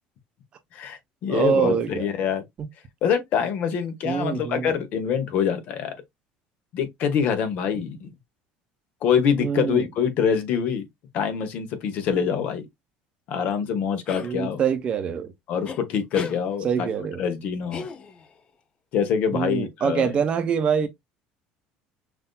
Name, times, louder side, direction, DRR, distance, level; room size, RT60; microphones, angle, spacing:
voice 1, 0.7-2.4 3.0-5.9 6.7-8.1 9.0-10.8 11.1-12.7 13.3-14.6 15.5-16.9 17.2-17.8 18.9-20.1, left 7 dB, 55° left, 1.0 m, -25 dB
voice 2, 1.3-2.1 2.6-2.7 4.0-4.7 9.4-9.9 14.2-15.3 16.6-17.2 19.3-20.9, right 7 dB, 35° right, 0.8 m, -24 dB
sound 1, 14.1-14.3 15.7-15.8 16.1-16.4 17.7-18.4, left 5 dB, 30° left, 0.6 m, -35 dB
5.8 x 2.6 x 2.3 m
cardioid pair, 130°, 3 cm